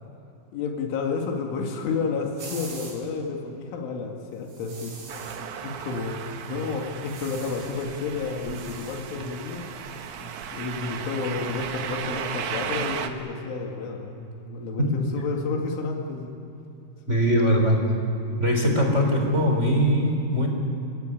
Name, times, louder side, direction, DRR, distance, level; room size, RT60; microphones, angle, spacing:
voice 1, 0.5-5.0 5.6-9.6 10.2-16.3 17.1-17.4, left 4 dB, 80° left, 1 dB, 4.6 m, -31 dB
sound 1, 2.4-3.0 4.5-5.4 6.9-7.9 8.2-10.5, right 4 dB, 60° right, 6.5 m, -44 dB
sound 2, 5.1-13.1, right 8 dB, 85° right, 1.7 m, -35 dB
voice 2, 17.1-17.8 18.4-20.5, equal, 15° right, 1 dB, 3.3 m, -21 dB
29.0 x 16.5 x 9.8 m, 2.8 s
omnidirectional pair, 5.5 m